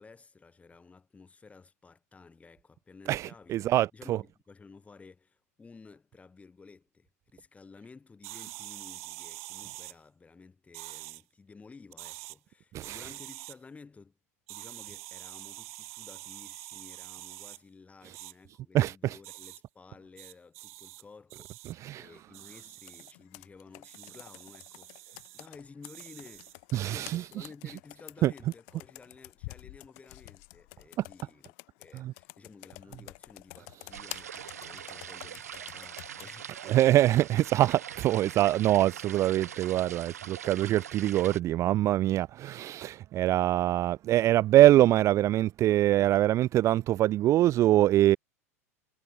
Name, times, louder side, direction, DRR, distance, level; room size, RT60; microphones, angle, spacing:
voice 1, 0.0-3.6 3.9-14.2 14.5-36.8, left 4 dB, 15° left, 4.9 m, -53 dB
voice 2, 3.1-4.2 12.7-13.0 18.7-19.2 21.8-22.1 26.7-27.5 28.2-28.3 31.9-32.1 36.7-48.2, right 14 dB, 35° right, 0.5 m, -24 dB
sound 1, 8.2-9.9 10.7-11.2 11.9-12.4 12.8-13.5 14.5-17.6 18.1-18.3 19.2-19.6 20.2-21.0 21.3-21.7 22.3-23.1 23.8-25.5 25.8-26.6, right 21 dB, 60° right, 3.9 m, -45 dB
Computer keyboard, 22.8-36.3, left 35 dB, 55° left, 1.3 m, -49 dB
sound 2, 33.9-41.4, right 9 dB, 80° right, 3.1 m, -43 dB
hypercardioid pair, 90°, 8 cm